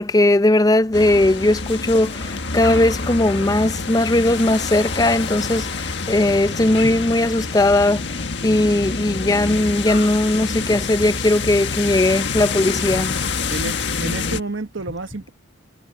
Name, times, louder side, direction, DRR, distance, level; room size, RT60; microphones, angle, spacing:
voice 1, 0.0-8.0 8.4-13.2, left 1 dB, 20° left, 0.5 m, -18 dB
sound 1, 0.9-14.4, left 4 dB, 65° left, 1.7 m, -27 dB
voice 2, 13.5-15.3, right 3 dB, 85° right, 1.3 m, -30 dB
head